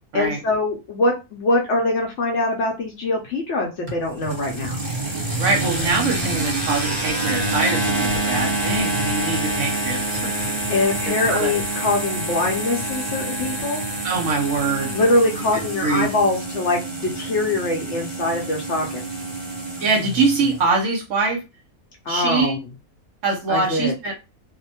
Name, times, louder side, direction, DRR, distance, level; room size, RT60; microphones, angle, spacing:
voice 1, 0.1-4.8 10.7-13.9 14.9-19.0 22.1-22.6 23.5-23.9, left 2 dB, 60° left, 0 dB, 0.8 m, -23 dB
sound 1, 3.9-20.6, right 2 dB, 25° right, 1.0 m, -27 dB
voice 2, 5.4-10.3 11.0-11.5 14.0-14.9 15.8-16.1 19.8-21.4 22.1-22.6 23.2-24.1, right 3 dB, 65° right, 2 dB, 0.9 m, -23 dB
2.6 x 2.1 x 2.7 m, 0.27 s
omnidirectional pair, 1.6 m